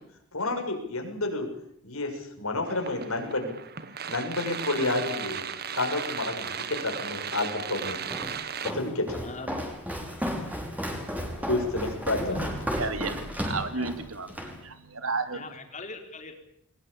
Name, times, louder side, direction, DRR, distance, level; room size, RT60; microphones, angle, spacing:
voice 1, 0.3-1.5 1.8-2.1 2.4-3.5 4.1-5.4 5.7-8.3 8.6-9.1 11.5-12.2, left 2 dB, 85° left, 3 dB, 6.8 m, -30 dB
sound 1, 2.7-8.7, right 7 dB, 50° right, 1.5 m, -36 dB
Walk footsteps, 8.1-14.6, equal, 5° right, 5.5 m, -33 dB
voice 2, 8.7-9.6 12.2-12.8 13.6-13.9 15.3-16.3, left 2 dB, 35° left, 5 dB, 4.3 m, -41 dB
voice 3, 12.8-15.4, right 3 dB, 75° right, 10 dB, 2.9 m, -33 dB
22.5 x 21.0 x 8.7 m, 0.73 s
head